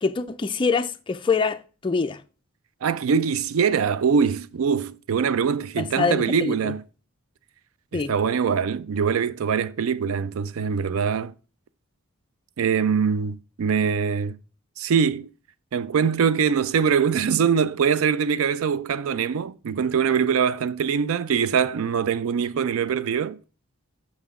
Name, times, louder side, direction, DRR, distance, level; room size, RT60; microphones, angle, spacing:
voice 1, 0.0-2.2 5.8-6.7 7.9-8.1, left 4 dB, 25° left, 0.4 m, -25 dB
voice 2, 2.8-6.8 7.9-11.3 12.6-14.4 14.8-15.3 15.7-23.4, right 6 dB, 75° right, 0.4 m, -23 dB
6.0 x 5.7 x 3.6 m
head